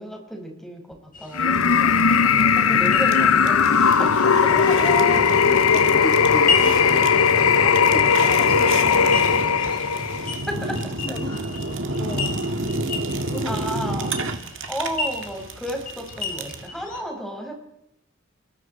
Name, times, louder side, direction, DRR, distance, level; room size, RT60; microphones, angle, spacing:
voice 1, 0.0-4.5 6.5-6.6 10.5-10.8 13.4-14.1 14.7-17.5, equal, ahead, 1 dB, 5.8 m, -33 dB
sound 1, 1.1-17.0, left 4 dB, 40° left, 5.2 m, -35 dB
sound 2, 1.3-10.4, left 6 dB, 80° left, 0.8 m, -18 dB
Fire, 1.5-16.7, right 2 dB, 60° right, 2.2 m, -30 dB
voice 2, 2.5-3.1 4.5-5.4 5.7-7.0 7.6-9.2 10.5-10.6 11.0-12.4 13.2-13.6, left 1 dB, 25° left, -1 dB, 4.0 m, -33 dB
29.5 x 22.5 x 4.5 m, 0.84 s
head